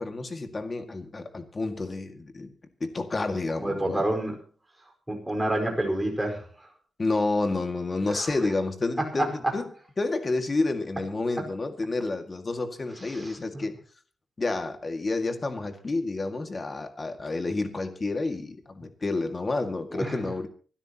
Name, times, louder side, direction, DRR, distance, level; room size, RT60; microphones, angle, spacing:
voice 1, 0.0-2.5 2.8-4.0 7.0-9.7 10.0-13.7 14.4-20.5, left 3 dB, 30° left, 7 dB, 2.1 m, -29 dB
voice 2, 3.6-4.3 5.1-6.5 8.1-8.3 9.2-9.3 13.0-13.6 19.9-20.3, right 1 dB, 10° right, 2 dB, 4.8 m, -29 dB
25.0 x 12.5 x 3.0 m, 0.41 s
wide cardioid pair, 125°, 0 cm